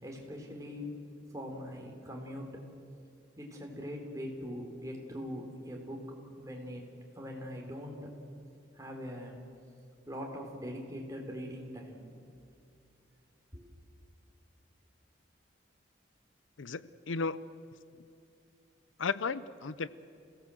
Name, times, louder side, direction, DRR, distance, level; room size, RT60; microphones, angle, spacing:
voice 1, 0.0-0.9 1.3-2.6 3.4-6.8 7.1-8.1 8.7-9.4 10.1-12.1 13.5-13.7, equal, 15° right, 0 dB, 3.7 m, -42 dB
voice 2, 16.6-17.6 19.0-19.9, left 4 dB, 85° left, 16 dB, 0.7 m, -34 dB
28.0 x 17.5 x 7.8 m, 2.6 s
head